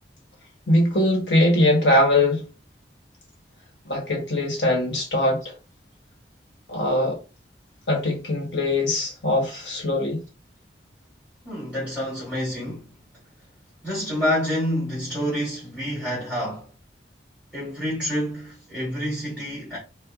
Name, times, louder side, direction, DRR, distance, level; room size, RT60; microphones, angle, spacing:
voice 1, 0.7-2.4 3.8-5.4 6.7-7.2 7.9-10.2, left 1 dB, 90° left, 1.2 m, -21 dB
voice 2, 11.4-12.9 13.8-16.7 17.5-19.8, equal, 5° right, 1.8 m, -28 dB
4.5 x 2.1 x 2.4 m
head